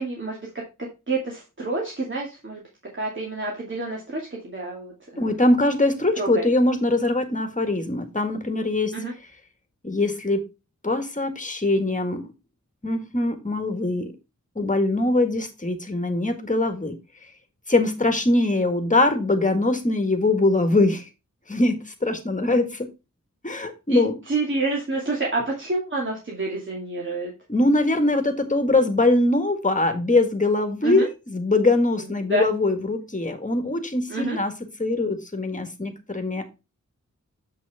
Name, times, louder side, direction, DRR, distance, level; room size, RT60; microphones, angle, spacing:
voice 1, 0.0-2.6 2.9-5.3 6.2-6.5 8.9-9.1 23.9-27.3 30.8-31.1 32.3-32.4 34.1-34.4, right 2 dB, 35° right, -2 dB, 2.4 m, -28 dB
voice 2, 5.2-8.9 9.8-10.4 10.8-12.3 12.8-14.1 14.6-16.9 17.7-21.1 21.5-22.9 23.4-24.2 27.5-36.5, left 2 dB, 25° left, 7 dB, 1.8 m, -22 dB
7.7 x 6.2 x 3.5 m, 0.27 s
wide cardioid pair, 85°, 32 cm